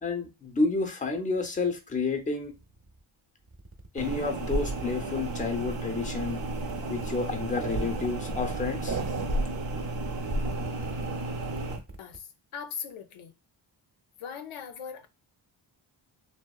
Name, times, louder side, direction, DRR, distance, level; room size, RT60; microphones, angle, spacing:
voice 1, 0.0-2.5 3.9-6.4 6.9-9.0, left 3 dB, 15° left, 0.6 m, -30 dB
sound 1, 0.8-3.0 3.4-6.1 6.4-12.2, right 2 dB, 30° right, 0.7 m, -48 dB
sound 2, 4.0-11.8, right 2 dB, 65° right, 0.9 m, -32 dB
voice 2, 12.0-13.3 14.2-15.1, left 7 dB, 80° left, 0.6 m, -40 dB
2.7 x 2.1 x 2.3 m
cardioid pair, 65°, 49 cm